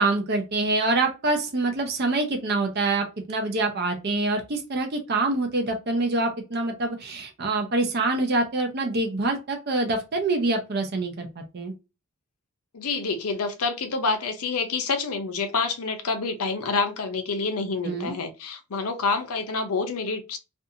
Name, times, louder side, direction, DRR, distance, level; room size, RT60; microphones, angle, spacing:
voice 1, 0.0-11.3 11.5-11.7 17.8-18.2, right 2 dB, 45° right, 0.5 m, -25 dB
voice 2, 12.7-20.4, left 4 dB, 80° left, 0.6 m, -27 dB
2.5 x 2.4 x 2.7 m
head